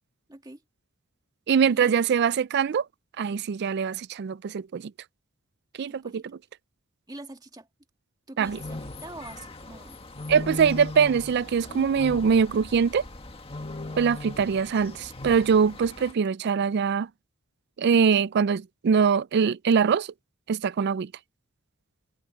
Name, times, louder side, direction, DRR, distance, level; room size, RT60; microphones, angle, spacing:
voice 1, 0.3-0.6 1.7-1.9 5.8-6.2 7.1-7.7 8.3-10.0, right 2 dB, 20° right, 1.8 m, -44 dB
voice 2, 1.5-2.9 3.2-4.9 5.8-6.2 8.4-8.6 10.3-13.0 14.0-17.1 17.8-20.1 20.5-21.1, right 6 dB, 55° right, 0.4 m, -23 dB
sound 1, 8.4-16.1, left 2 dB, 30° left, 1.8 m, -38 dB
head